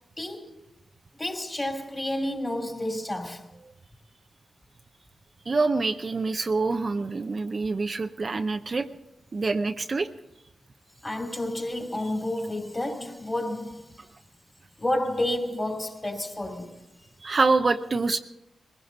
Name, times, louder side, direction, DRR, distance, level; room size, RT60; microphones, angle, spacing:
voice 1, 0.2-0.5 1.2-3.5 11.0-13.8 14.8-16.8, left 1 dB, 20° left, 2.7 m, -30 dB
voice 2, 5.5-8.9 9.3-10.1 17.2-18.2, right 3 dB, 45° right, 0.6 m, -25 dB
20.5 x 16.0 x 4.0 m
cardioid pair, 65°, 0 cm